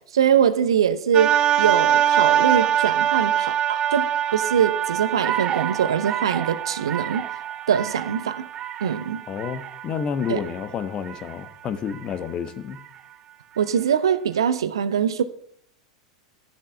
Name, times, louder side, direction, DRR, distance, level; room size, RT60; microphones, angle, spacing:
voice 1, 0.1-7.2 7.7-8.5 8.8-9.2 10.3-10.4 13.6-15.2, right 8 dB, 65° right, 0.8 m, -23 dB
sound 1, 1.1-11.3 11.9-12.0, right 10 dB, 30° right, 0.6 m, -24 dB
voice 2, 9.3-12.8, left 7 dB, 30° left, 1.2 m, -30 dB
13.0 x 7.4 x 7.1 m
figure-of-eight pair, 85°, 3 cm